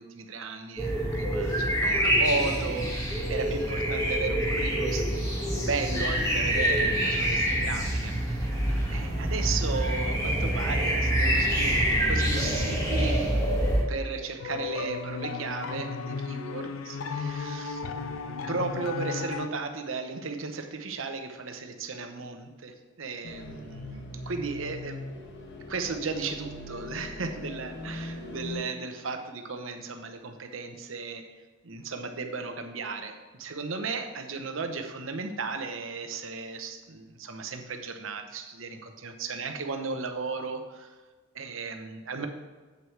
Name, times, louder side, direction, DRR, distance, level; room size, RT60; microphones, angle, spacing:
voice 1, 0.0-5.1 5.6-8.5 8.9-13.3 13.9-17.8 18.5-25.1 25.7-31.2 31.6-40.9 41.3-42.3, right 4 dB, 75° right, 6 dB, 0.9 m, -35 dB
sound 1, 0.8-13.8, right 1 dB, 20° left, 1.8 m, -26 dB
sound 2, 14.4-19.5, left 5 dB, 80° left, 0.5 m, -34 dB
sound 3, 23.2-28.6, left 1 dB, 60° left, 1.2 m, -40 dB
8.2 x 7.9 x 3.3 m, 1.3 s
head